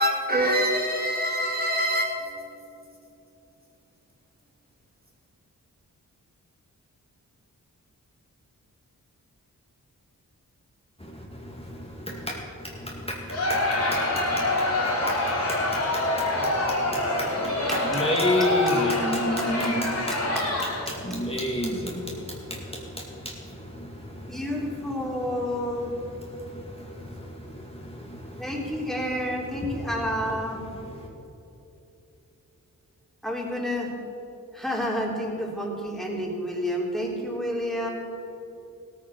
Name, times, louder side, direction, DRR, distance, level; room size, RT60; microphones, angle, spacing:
voice 1, 0.0-2.2, equal, 25° right, 2.1 m, -24 dB
voice 2, 11.0-31.1, left 1 dB, 15° left, 2.2 m, -33 dB
Crowd, 13.3-21.0, left 1 dB, 50° left, 3.8 m, -26 dB
voice 3, 24.2-26.0 28.4-30.7 33.2-34.0 34.5-37.9, equal, ahead, 3.4 m, -29 dB
16.5 x 9.3 x 6.1 m
cardioid pair, 65°, 34 cm